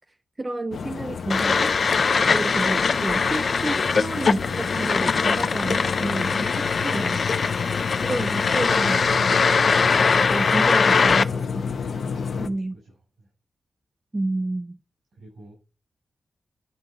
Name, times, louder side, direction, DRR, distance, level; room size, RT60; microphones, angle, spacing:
voice 1, 0.4-1.8 2.3-7.2 8.0-9.4 10.2-11.6 12.4-12.8 14.1-14.8, right 2 dB, 20° right, 0.3 m, -30 dB
sound 1, 0.7-12.5, left 5 dB, 70° left, 0.8 m, -30 dB
sound 2, 1.3-11.2, left 5 dB, 50° left, 0.4 m, -22 dB
voice 2, 12.7-13.3 15.1-15.5, right 1 dB, 75° right, 6.0 m, -49 dB
10.5 x 4.1 x 6.6 m
wide cardioid pair, 160°, 0 cm